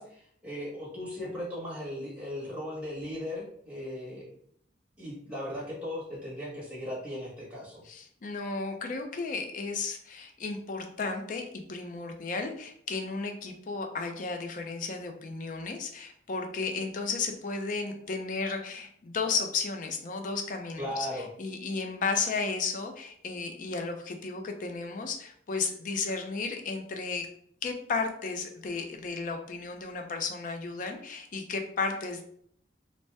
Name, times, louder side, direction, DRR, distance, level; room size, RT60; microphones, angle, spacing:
voice 1, 0.0-4.3 5.0-7.8 20.8-21.3, left 1 dB, 5° right, -6 dB, 1.1 m, -37 dB
voice 2, 7.8-27.3 27.6-32.2, left 4 dB, 45° left, 4 dB, 0.4 m, -34 dB
2.7 x 2.1 x 3.3 m, 0.64 s
head